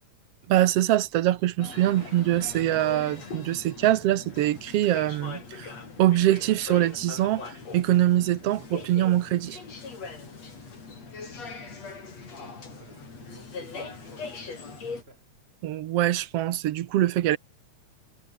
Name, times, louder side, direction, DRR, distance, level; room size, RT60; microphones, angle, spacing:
voice 1, 0.5-5.7 6.0-9.6 15.6-17.4, right 13 dB, 65° right, 1.7 m, -24 dB
sound 1, 1.6-15.0, left 4 dB, 60° left, 6.2 m, -41 dB
voice 2, 12.4-14.5 14.9-15.3, right 1 dB, 20° right, 4.8 m, -52 dB
omnidirectional pair, 3.4 m